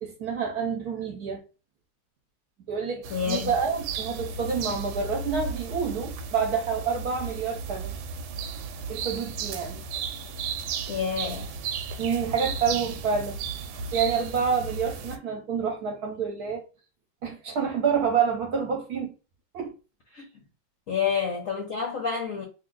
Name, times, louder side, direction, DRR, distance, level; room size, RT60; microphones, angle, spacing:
voice 1, 0.0-1.4 2.7-7.9 8.9-9.8 12.0-13.4 13.9-16.6 17.2-19.1 19.5-19.7, right 6 dB, 60° right, 1.1 m, -28 dB
sound 1, 3.0-15.2, right 5 dB, 85° right, 1.4 m, -34 dB
voice 2, 3.1-3.5 10.9-11.5 20.1-20.3 20.9-22.4, left 6 dB, 65° left, 0.8 m, -28 dB
2.9 x 2.6 x 3.8 m
omnidirectional pair, 2.1 m